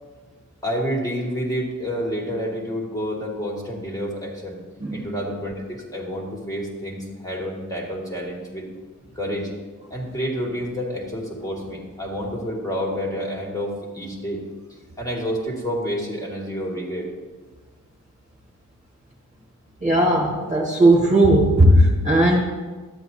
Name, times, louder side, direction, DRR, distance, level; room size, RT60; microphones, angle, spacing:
voice 1, 0.6-4.6 4.9-8.7 9.2-9.5 9.9-14.4 15.0-17.1, equal, 10° left, -3 dB, 2.4 m, -29 dB
voice 2, 19.8-22.4, right 1 dB, 20° right, -4 dB, 2.0 m, -16 dB
12.0 x 8.0 x 2.9 m, 1.3 s
cardioid pair, 60°, 33 cm